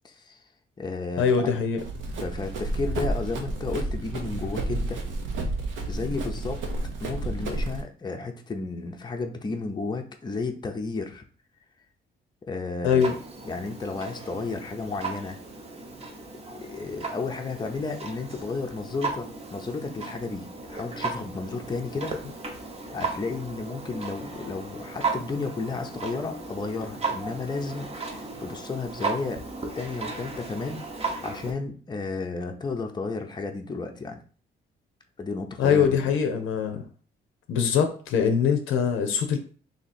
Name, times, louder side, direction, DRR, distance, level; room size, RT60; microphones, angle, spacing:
voice 1, 0.0-0.4 0.8-1.6 2.2-5.0 5.8-6.6 7.0-11.2 12.5-13.2 13.4-15.4 16.5-22.1 22.9-29.4 29.7-34.2 35.2-36.0, left 3 dB, 20° left, 4 dB, 0.6 m, -33 dB
voice 2, 1.2-1.8 12.8-13.1 35.6-36.9 37.5-39.4, left 7 dB, 85° left, 6 dB, 0.6 m, -23 dB
Run, 1.8-7.8, right 2 dB, 75° right, 0.8 m, -31 dB
Clock, 13.0-31.5, right 4 dB, 30° right, 0.8 m, -36 dB
2.9 x 2.8 x 4.2 m, 0.42 s
cardioid pair, 90°, 20 cm